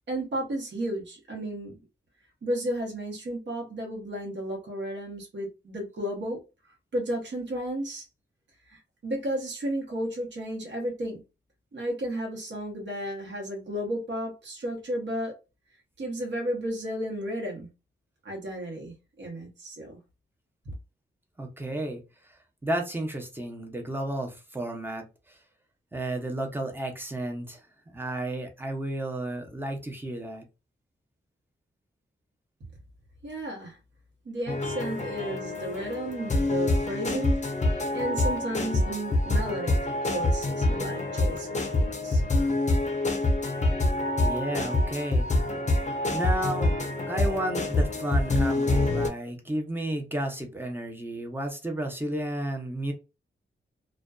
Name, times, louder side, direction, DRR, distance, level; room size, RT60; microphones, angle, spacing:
voice 1, 0.1-1.7 2.4-6.4 6.9-8.0 8.7-11.2 11.7-15.3 16.0-17.7 18.2-20.0 33.2-33.8 34.2-37.3 37.9-39.7 40.0-42.2, right 1 dB, 65° right, 0.9 m, -33 dB
voice 2, 21.4-22.0 22.6-25.4 25.9-27.6 27.9-30.4 44.2-45.2 46.1-46.7 47.1-52.9, right 1 dB, 10° right, 0.6 m, -32 dB
sound 1, 34.5-49.1, left 2 dB, 35° left, 0.5 m, -26 dB
2.5 x 2.2 x 2.2 m
wide cardioid pair, 125°, 20 cm